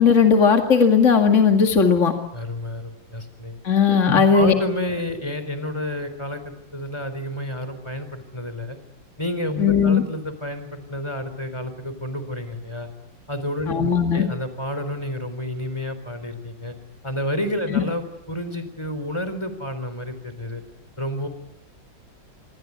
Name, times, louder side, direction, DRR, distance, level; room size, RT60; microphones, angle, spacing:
voice 1, 0.0-2.1 3.6-4.5 9.6-10.0 13.7-14.2 17.7-17.8, left 6 dB, 40° left, 4 dB, 2.5 m, -17 dB
voice 2, 2.3-3.5 4.1-8.8 9.2-12.9 13.3-16.7 17.0-20.6 21.0-21.3, left 1 dB, 15° left, 10 dB, 4.1 m, -30 dB
26.5 x 23.5 x 9.6 m, 0.84 s
omnidirectional pair, 2.0 m